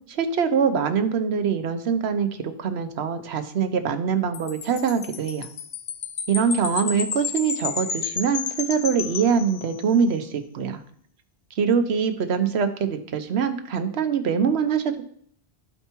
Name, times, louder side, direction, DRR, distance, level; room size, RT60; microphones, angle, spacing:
voice 1, 0.1-5.5 6.3-10.8 11.6-15.0, right 6 dB, 90° right, 8 dB, 1.0 m, -24 dB
Wind chime, 4.3-10.0, left 6 dB, 50° left, 0.5 m, -32 dB
13.5 x 4.5 x 2.9 m, 0.63 s
omnidirectional pair, 1.1 m